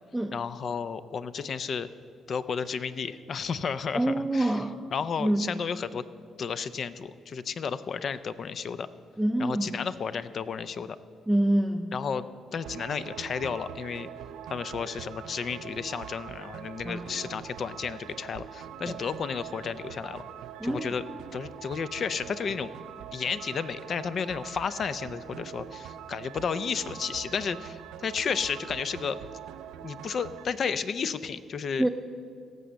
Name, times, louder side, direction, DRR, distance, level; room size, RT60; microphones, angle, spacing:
voice 1, 0.3-1.9 2.3-4.6 4.9-6.0 6.4-8.9 9.4-11.0 11.9-14.1 14.5-20.2 20.6-21.0 21.3-22.7 23.1-29.2 29.8-31.9, left 6 dB, 55° left, 14 dB, 0.5 m, -32 dB
voice 2, 3.9-4.8 5.2-5.5 9.2-9.8 11.3-12.0 16.8-17.3 18.9-19.0 20.6-20.9 31.8-31.9, right 1 dB, 5° right, 5 dB, 0.5 m, -26 dB
sound 1, 12.6-30.5, right 10 dB, 90° right, 0.3 m, -43 dB
17.5 x 6.9 x 6.4 m, 2.3 s
cardioid pair, 90°, 0 cm